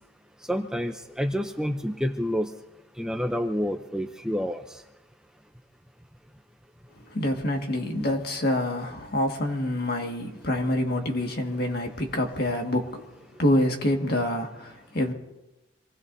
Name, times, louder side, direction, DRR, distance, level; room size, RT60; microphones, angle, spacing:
voice 1, 0.5-2.5 3.0-4.6, equal, 5° right, 0.6 m, -28 dB
voice 2, 7.1-13.0 13.4-15.1, left 1 dB, 50° left, 1.9 m, -26 dB
26.5 x 20.0 x 2.7 m
head